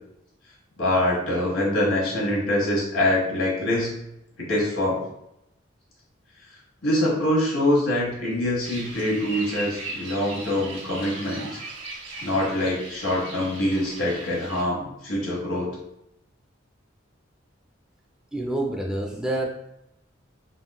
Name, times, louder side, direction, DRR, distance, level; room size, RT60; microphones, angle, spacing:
voice 1, 0.8-3.9 4.4-5.0 6.8-11.6 12.2-15.7, left 1 dB, 80° left, -4 dB, 1.3 m, -24 dB
sound 1, 8.6-14.6, right 2 dB, 70° right, 0.7 m, -38 dB
voice 2, 18.3-19.5, right 1 dB, 5° right, -1 dB, 0.4 m, -27 dB
3.6 x 2.5 x 2.2 m, 0.81 s
head